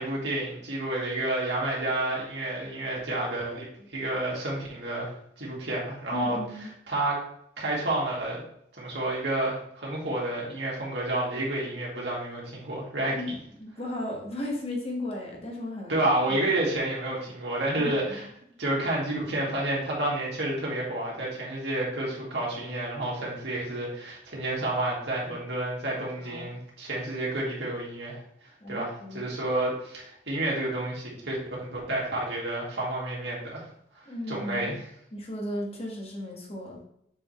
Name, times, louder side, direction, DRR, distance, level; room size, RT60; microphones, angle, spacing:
voice 1, 0.0-5.1 5.4-6.4 6.9-7.2 7.6-8.4 8.8-13.2 15.9-18.3 18.6-28.2 28.7-33.6 33.9-34.8, right 1 dB, 80° right, -4 dB, 2.3 m, -30 dB
voice 2, 6.1-6.7 13.1-16.1 17.8-17.9 26.2-26.5 28.6-29.3 34.1-34.7 35.1-36.8, left 1 dB, 35° left, -1 dB, 1.5 m, -35 dB
6.9 x 4.4 x 3.3 m, 0.71 s
head